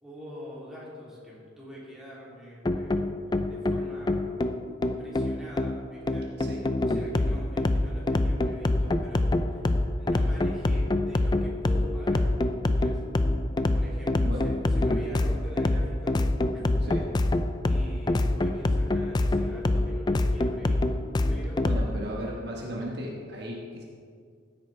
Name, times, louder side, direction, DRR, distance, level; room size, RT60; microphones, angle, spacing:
voice 1, 0.0-3.2 3.5-4.4 5.0-6.3 6.8-9.7 10.0-13.0 13.7-16.2 16.5-16.9 17.7-21.0 21.3-22.1, equal, ahead, -8 dB, 2.8 m, -45 dB
sound 1, 2.6-21.9, left 2 dB, 20° left, 0.4 m, -26 dB
voice 2, 21.6-23.8, equal, 55° right, -2 dB, 1.4 m, -35 dB
15.0 x 8.7 x 3.3 m, 2.1 s
head